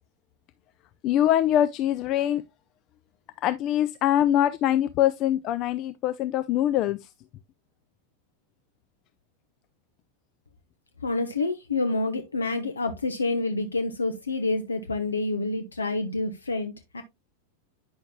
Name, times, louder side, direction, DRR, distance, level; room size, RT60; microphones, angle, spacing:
voice 1, 1.0-2.4 3.4-7.0, left 12 dB, 35° left, 0.5 m, -23 dB
voice 2, 11.0-17.0, left 2 dB, 75° left, 0.9 m, -28 dB
9.6 x 6.4 x 2.2 m
figure-of-eight pair, 90°, 0 cm